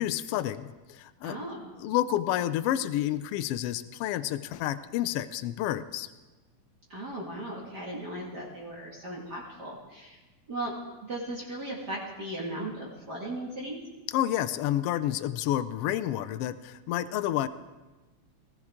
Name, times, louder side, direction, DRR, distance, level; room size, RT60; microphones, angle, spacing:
voice 1, 0.0-1.4 1.8-6.1 14.1-17.5, left 12 dB, 85° left, 12 dB, 1.3 m, -29 dB
voice 2, 1.2-1.7 6.9-10.2 10.5-10.7 11.1-13.8, right 1 dB, 35° right, -4 dB, 2.2 m, -37 dB
19.0 x 15.5 x 3.6 m, 1.2 s
omnidirectional pair, 3.3 m